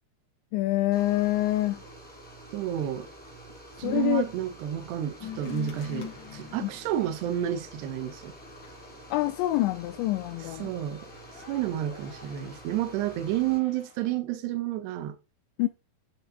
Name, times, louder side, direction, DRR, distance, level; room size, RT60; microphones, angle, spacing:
voice 1, 0.5-1.8 3.8-4.2 6.6-6.7 9.1-10.7 15.6-15.7, left 16 dB, 90° left, 3.1 m, -26 dB
sound 1, 0.9-13.6, right 1 dB, ahead, 2.8 m, -48 dB
voice 2, 2.5-3.1 3.8-8.3 10.6-11.1 11.5-15.2, right 12 dB, 75° right, 3.1 m, -30 dB
sound 2, 5.2-14.2, left 9 dB, 60° left, 1.2 m, -46 dB
11.5 x 5.4 x 4.8 m
omnidirectional pair, 5.2 m